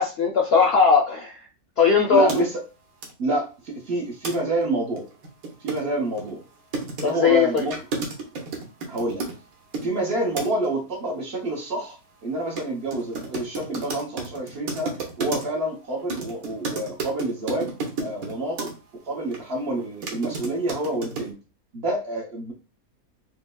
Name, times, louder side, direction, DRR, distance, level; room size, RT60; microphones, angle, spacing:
voice 1, 0.0-1.4 1.8-2.4 7.0-7.7, left 5 dB, 65° left, 0 dB, 0.6 m, -19 dB
voice 2, 2.1-2.6 3.2-5.0 5.6-6.4 7.0-7.8 8.9-9.2 9.8-12.0 12.2-14.9 15.2-17.7 18.0-18.7 19.1-21.3 21.7-22.5, right 2 dB, 50° right, -1 dB, 1.0 m, -28 dB
sound 1, 2.3-2.4 3.0-3.1 4.2-4.4 4.6-4.7 5.0-9.9 10.4-10.7 12.6-12.7 12.9-15.6 16.1-18.7 19.3-19.4 19.8-21.3, right 3 dB, 75° right, 1.3 m, -32 dB
4.4 x 2.0 x 2.2 m, 0.33 s
omnidirectional pair, 1.5 m